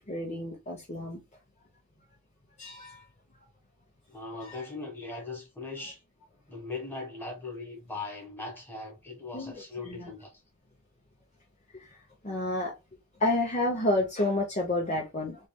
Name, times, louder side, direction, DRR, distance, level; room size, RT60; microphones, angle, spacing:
voice 1, 0.1-1.2 2.6-3.0 4.4-4.6 9.3-9.5 9.8-10.1 11.7-11.9 12.2-12.7 13.2-15.4, left 1 dB, 30° left, 0.8 m, -30 dB
voice 2, 4.1-6.0 6.5-10.3, left 3 dB, 10° left, 1.5 m, -39 dB
3.3 x 3.2 x 2.2 m
head